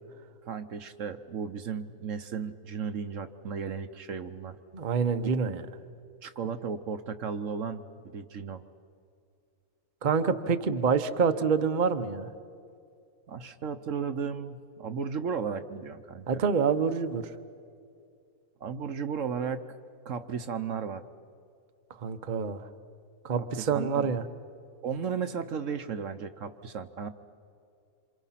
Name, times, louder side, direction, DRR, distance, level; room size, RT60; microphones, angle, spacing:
voice 1, 0.4-4.6 5.2-5.3 6.2-8.6 13.3-16.4 18.6-19.6 20.0-21.0 23.4-24.1 24.8-27.1, right 6 dB, 60° right, 9 dB, 1.2 m, -35 dB
voice 2, 4.7-5.6 10.0-12.3 16.3-17.2 22.0-22.6 23.2-24.2, right 6 dB, 40° right, 8 dB, 0.9 m, -26 dB
27.5 x 26.5 x 5.8 m, 2.4 s
omnidirectional pair, 1.6 m